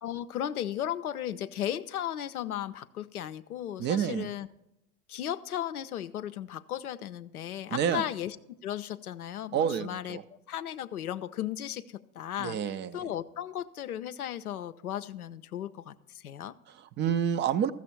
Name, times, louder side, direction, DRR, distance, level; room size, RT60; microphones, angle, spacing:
voice 1, 0.0-4.5 5.1-8.4 8.6-10.2 10.5-12.6 12.9-16.6, left 11 dB, 90° left, 11 dB, 0.6 m, -35 dB
voice 2, 3.8-4.3 7.7-8.0 9.5-10.2 12.4-13.0 16.7-17.7, right 8 dB, 30° right, 14 dB, 0.4 m, -29 dB
14.0 x 7.1 x 4.4 m, 0.87 s
figure-of-eight pair, 75°, 43 cm